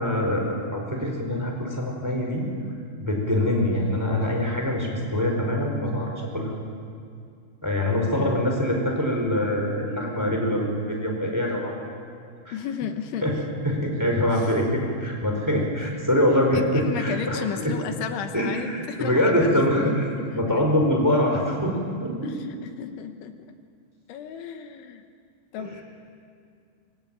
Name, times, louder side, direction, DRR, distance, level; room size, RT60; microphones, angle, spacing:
voice 1, 0.0-2.5 3.0-6.5 7.6-11.7 12.4-12.5 13.2-13.4 13.6-17.7 18.3-20.1 20.3-22.3 25.6-25.7, left 1 dB, 5° right, 1 dB, 3.9 m, -24 dB
voice 2, 8.2-8.5 12.5-13.4 14.3-14.5 15.5-15.7 16.5-19.9 20.2-20.4 22.2-23.6 24.1-25.0 25.5-25.8, left 8 dB, 80° left, 7 dB, 3.5 m, -34 dB
24.5 x 23.0 x 9.1 m, 2.2 s
omnidirectional pair, 5.5 m